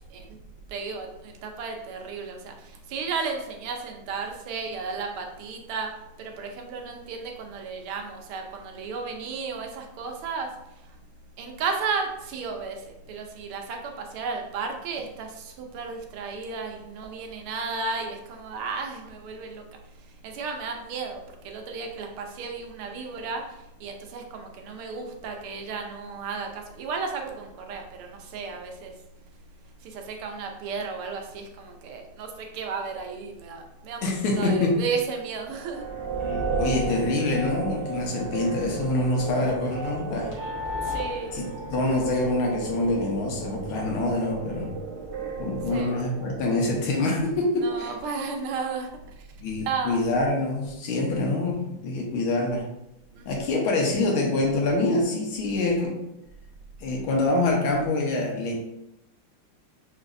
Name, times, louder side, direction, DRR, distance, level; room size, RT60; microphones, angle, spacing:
voice 1, 0.7-5.9 6.2-10.5 11.4-19.6 20.2-28.9 29.8-34.0 34.4-35.9 40.8-41.3 45.7-45.9 47.6-48.9 49.6-50.0 53.1-53.3, right 5 dB, 80° right, 3 dB, 1.6 m, -33 dB
voice 2, 34.0-34.8 36.6-40.3 41.3-41.4 41.7-44.7 45.4-47.9 49.4-52.7 53.3-56.0 56.8-58.6, left 2 dB, 75° left, 0 dB, 1.7 m, -25 dB
sound 1, 35.5-46.8, right 3 dB, 35° right, 1.1 m, -33 dB
5.9 x 3.3 x 2.5 m, 0.88 s
omnidirectional pair, 2.4 m